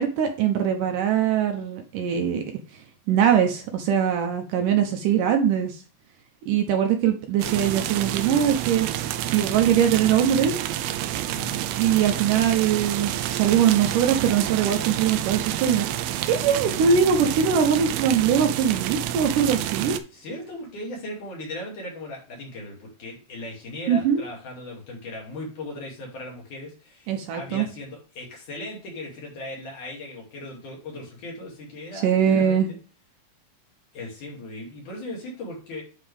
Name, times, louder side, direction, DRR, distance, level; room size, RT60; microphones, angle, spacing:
voice 1, 0.0-2.4 3.1-5.8 6.5-8.9 9.3-10.6 11.8-15.9 16.3-20.0 23.9-24.2 27.1-27.7 32.0-32.7, right 8 dB, 70° right, 4 dB, 2.3 m, -22 dB
sound 1, 7.4-20.0, right 12 dB, 90° right, 2.5 m, -29 dB
voice 2, 11.3-11.6 20.1-32.8 33.9-35.8, left 1 dB, 60° left, -2 dB, 3.9 m, -38 dB
9.3 x 4.5 x 3.4 m, 0.35 s
omnidirectional pair, 4.2 m